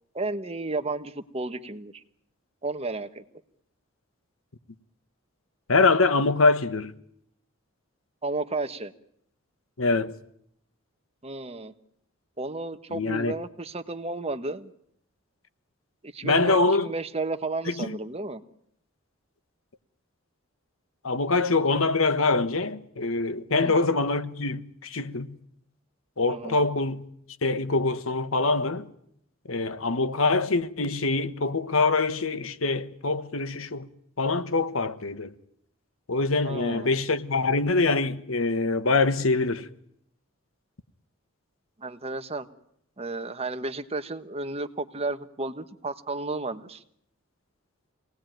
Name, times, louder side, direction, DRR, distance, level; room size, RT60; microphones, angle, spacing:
voice 1, 0.1-1.9 2.6-3.2 8.2-8.9 11.2-11.7 12.4-14.7 16.0-18.4 23.5-23.8 26.3-26.6 36.4-36.9 41.8-42.5 43.0-46.8, right 3 dB, 30° right, 1.3 m, -33 dB
voice 2, 5.7-6.9 9.8-10.1 12.9-13.3 16.2-16.9 17.7-18.0 21.0-25.3 26.2-27.0 27.4-28.9 29.5-33.9 34.2-35.3 36.1-39.7, left 3 dB, 85° left, 1.4 m, -24 dB
26.0 x 18.5 x 9.2 m
head